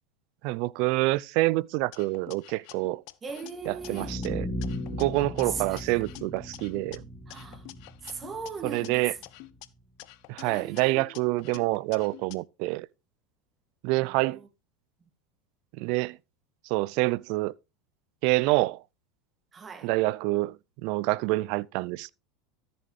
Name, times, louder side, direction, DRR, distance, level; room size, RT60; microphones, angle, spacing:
voice 1, 0.4-3.0 3.7-4.5 5.0-7.0 8.6-9.1 10.3-12.9 13.8-14.4 15.7-16.2 16.7-17.5 18.2-18.8 19.8-22.1, right 21 dB, 60° right, 0.5 m, -27 dB
sound 1, 1.9-4.3 4.6-7.0 7.3-9.7 10.0-12.4, left 19 dB, 60° left, 0.7 m, -48 dB
voice 2, 3.2-4.2 5.5-5.8 7.3-7.7 8.0-9.1 10.4-11.1 14.0-14.5 19.5-19.9, right 5 dB, 25° right, 2.2 m, -39 dB
sound 2, 3.6-9.6, left 1 dB, 5° left, 2.4 m, -38 dB
14.0 x 7.0 x 3.2 m
hypercardioid pair, 90°, 0 cm